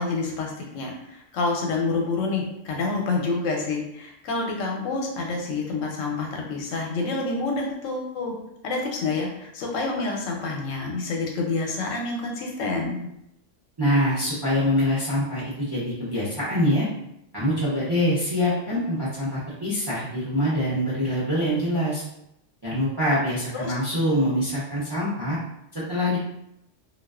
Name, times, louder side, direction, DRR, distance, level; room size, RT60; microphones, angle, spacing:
voice 1, 0.0-8.3 8.6-13.1 23.5-23.7, left 3 dB, 80° left, 1 dB, 1.0 m, -28 dB
voice 2, 13.8-16.9 17.3-22.0 22.6-25.4 25.7-26.2, equal, 30° right, -9 dB, 0.5 m, -24 dB
2.4 x 2.3 x 2.3 m, 0.80 s
omnidirectional pair, 1.3 m